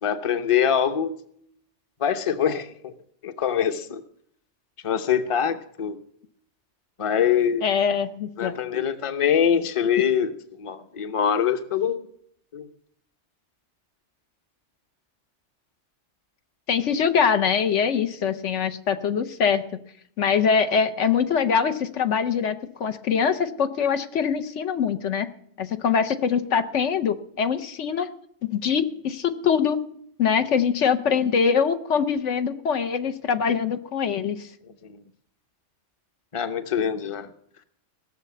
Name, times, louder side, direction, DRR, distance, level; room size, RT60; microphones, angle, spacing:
voice 1, 0.0-1.1 2.0-2.9 3.2-4.0 4.8-6.0 7.0-7.6 8.4-10.3 10.6-12.0 12.5-12.7 34.8-34.9 36.3-37.3, left 8 dB, 30° left, 9 dB, 0.8 m, -24 dB
voice 2, 7.6-8.6 16.7-19.6 20.2-25.3 25.6-28.1 28.5-29.8 30.2-34.5, left 6 dB, 75° left, 9 dB, 1.2 m, -23 dB
17.5 x 6.7 x 8.4 m, 0.66 s
omnidirectional pair, 1.2 m